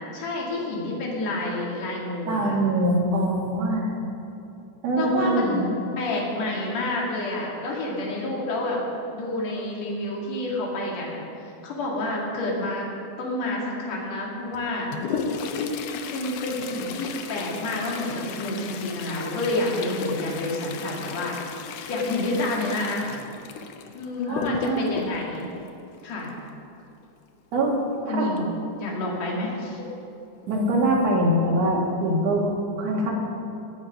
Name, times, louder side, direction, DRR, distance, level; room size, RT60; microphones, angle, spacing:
voice 1, 0.1-2.6 5.0-5.7 6.0-8.8 9.1-12.9 13.2-14.9 16.1-21.4 21.9-23.1 23.9-25.5 26.0-26.3 28.1-28.5 28.8-29.8, left 2 dB, 55° left, -3 dB, 3.3 m, -29 dB
voice 2, 2.3-3.9 4.8-5.8 24.3-24.9 27.5-27.7 28.1-28.3 30.5-32.5 32.8-33.1, right 1 dB, 55° right, -3 dB, 3.0 m, -23 dB
Toilet flush, 14.5-26.5 28.4-28.5 28.8-28.9 29.7-29.8 30.4-30.7 31.1-31.3, left 5 dB, 75° left, 1.5 m, -35 dB
20.5 x 7.7 x 5.2 m, 2.8 s
omnidirectional pair, 3.7 m